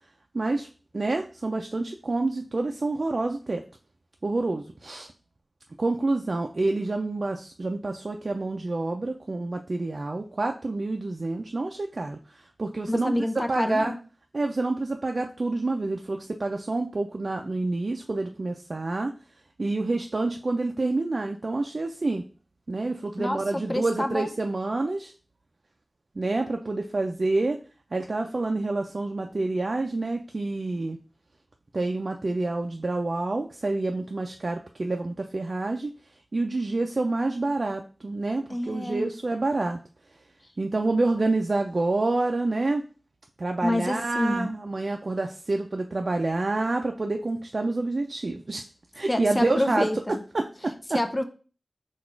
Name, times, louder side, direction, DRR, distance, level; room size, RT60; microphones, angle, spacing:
voice 1, 0.3-0.7 0.9-3.6 4.2-5.1 5.8-13.9 14.3-19.1 19.6-22.2 22.7-25.1 26.2-27.6 27.9-31.0 31.7-35.9 36.3-39.8 40.6-42.8 43.4-48.6 48.9-49.9 50.3-51.0, right 2 dB, 60° right, 4 dB, 0.3 m, -28 dB
voice 2, 12.9-14.0 23.2-24.3 38.5-39.1 43.6-44.5 49.1-50.2 50.9-51.2, left 1 dB, 25° left, 7 dB, 0.5 m, -27 dB
4.0 x 2.3 x 4.4 m, 0.37 s
wide cardioid pair, 55°, 0 cm